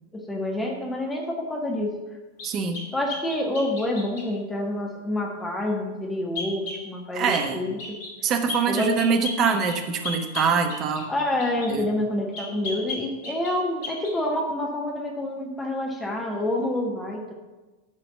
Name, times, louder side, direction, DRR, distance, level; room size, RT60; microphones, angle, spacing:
voice 1, 0.1-2.0 2.9-7.8 8.7-9.0 11.1-17.3, left 1 dB, 10° left, 0 dB, 1.4 m, -27 dB
sound 1, 2.4-4.3 6.3-6.8 7.3-7.5 7.8-8.2 8.5-11.7 12.3-13.6 13.8-14.1, left 2 dB, 50° left, 2.7 m, -35 dB
voice 2, 2.4-2.8 7.1-7.6 8.2-11.1 11.7-11.9, right 5 dB, 35° right, 6 dB, 1.1 m, -24 dB
11.0 x 4.1 x 6.8 m, 1.2 s
figure-of-eight pair, 90°, 0 cm